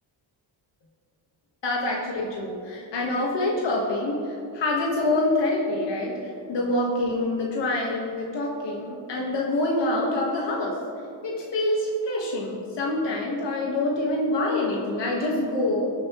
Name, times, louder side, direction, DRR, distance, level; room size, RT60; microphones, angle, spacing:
voice 1, 1.6-10.8 11.2-15.9, left 2 dB, 65° left, -2 dB, 1.5 m, -26 dB
20.0 x 7.5 x 3.0 m, 2.6 s
wide cardioid pair, 175°, 46 cm